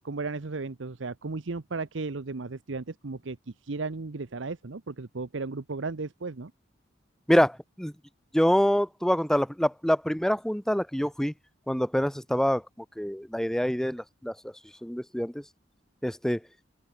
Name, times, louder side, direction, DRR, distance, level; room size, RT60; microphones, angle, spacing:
voice 1, 0.0-3.4 3.6-6.5, right 3 dB, 75° right, 0.9 m, -35 dB
voice 2, 7.3-7.9 8.3-11.3 11.7-12.6 13.0-14.3 14.8-15.4 16.0-16.4, equal, 5° left, 0.6 m, -25 dB
head